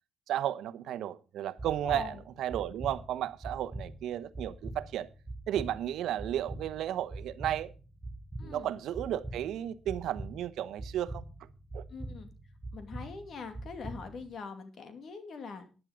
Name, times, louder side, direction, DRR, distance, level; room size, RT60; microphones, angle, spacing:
voice 1, 0.3-5.1 5.5-7.7 8.4-11.2 11.7-11.8, right 11 dB, 80° right, 0.9 m, -34 dB
sound 1, 1.6-14.3, right 1 dB, 15° right, 6.9 m, -44 dB
voice 2, 1.8-2.2 8.4-8.7 11.9-12.3 12.7-15.7, left 5 dB, 55° left, 2.4 m, -43 dB
11.0 x 10.0 x 5.0 m
cardioid pair, 90°, 0 cm